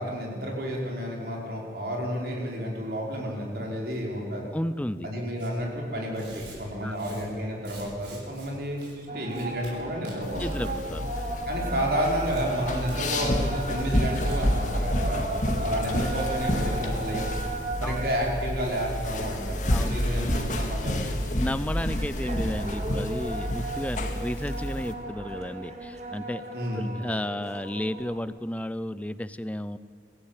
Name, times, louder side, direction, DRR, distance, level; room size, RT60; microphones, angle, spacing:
voice 1, 0.0-4.5 5.0-10.8 11.4-17.3 17.8-21.1 26.5-26.9, equal, 60° right, -1 dB, 5.0 m, -31 dB
voice 2, 4.5-5.1 6.8-7.0 10.4-11.3 17.8-18.0 19.7-20.0 21.3-26.5 26.8-29.8, left 1 dB, 10° left, 15 dB, 0.6 m, -33 dB
Tearing, 5.4-5.5 6.1-8.5 8.8-8.9 9.3-9.7 10.0-10.8 11.1-11.4 11.7-12.4 12.9-13.0 13.3-13.4 13.7-13.9 14.2-14.4, right 2 dB, 80° right, 7.8 m, -47 dB
sound 1, 9.1-28.2, right 2 dB, 40° right, 2.3 m, -37 dB
sound 2, 10.2-24.9, left 1 dB, 45° left, 2.2 m, -29 dB
24.0 x 16.5 x 9.0 m, 2.1 s
head